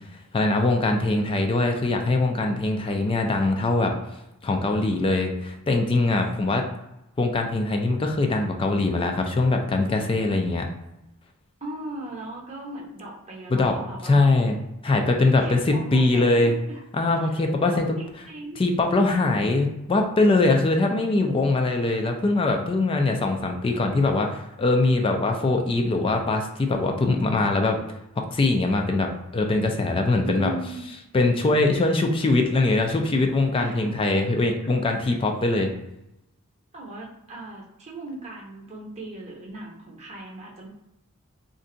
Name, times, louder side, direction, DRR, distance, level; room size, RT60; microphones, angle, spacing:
voice 1, 0.3-3.9 4.4-6.6 7.2-10.7 13.5-13.7 14.0-14.6 14.8-16.5 16.9-18.0 18.6-27.8 28.3-30.5 31.1-35.7, left 2 dB, 25° left, 3 dB, 0.3 m, -22 dB
voice 2, 11.6-14.3 15.2-16.8 17.1-18.6 30.2-30.9 31.2-31.6 33.5-34.0 34.4-34.7 35.0-35.1 36.7-40.7, right 2 dB, 30° right, -3 dB, 0.8 m, -38 dB
2.5 x 2.2 x 3.8 m, 0.88 s
head